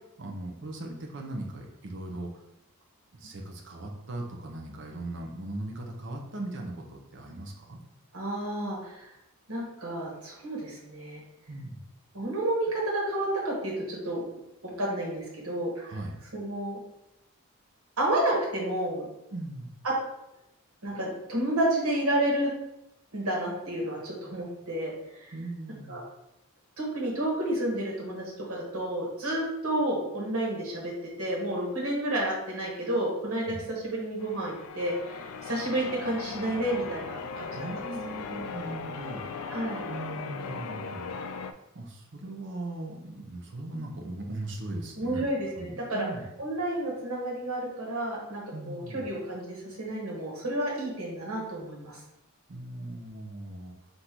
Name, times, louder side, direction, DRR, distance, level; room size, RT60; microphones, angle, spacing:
voice 1, 0.2-2.4 3.1-7.8 11.5-11.8 15.8-16.2 19.3-19.7 25.3-26.0 33.5-33.6 37.5-39.3 39.9-41.1 41.7-45.3 45.6-46.3 48.5-49.0 52.5-53.7, right 1 dB, 55° right, 1 dB, 0.7 m, -38 dB
voice 2, 8.1-9.0 9.5-11.2 12.1-14.2 14.6-16.0 16.3-16.8 18.0-19.0 19.8-19.9 20.8-22.5 23.1-25.3 25.9-26.0 26.8-37.7 39.5-39.8 45.0-46.1 46.4-52.0, right 1 dB, 85° right, -3 dB, 1.3 m, -30 dB
Church bell, 34.2-41.5, left 5 dB, 75° left, 0.3 m, -38 dB
3.8 x 2.7 x 4.4 m, 0.87 s
head